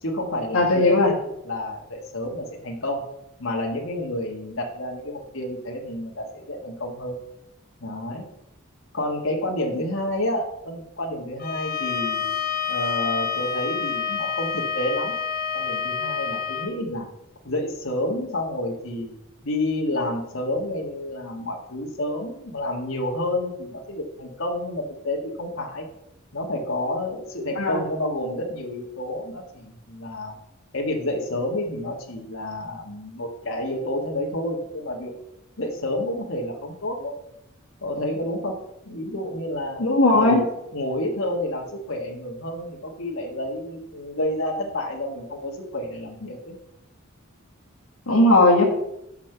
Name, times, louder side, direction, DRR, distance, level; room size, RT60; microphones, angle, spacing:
voice 1, 0.0-1.2 1.4-3.0 3.4-7.2 7.8-8.3 8.9-12.3 12.7-15.1 15.5-17.1 17.4-19.1 19.4-25.8 26.3-30.3 30.7-35.1 35.6-37.2 37.8-38.5 38.8-39.8 40.1-40.5 40.7-46.5, left 1 dB, 65° left, -1 dB, 1.6 m, -29 dB
voice 2, 0.5-1.1 27.5-27.8 39.8-40.4 48.1-48.7, left 2 dB, 80° left, -1 dB, 1.6 m, -17 dB
Bowed string instrument, 11.4-16.7, left 7 dB, 45° left, 0.8 m, -28 dB
6.0 x 5.8 x 6.7 m, 0.82 s
head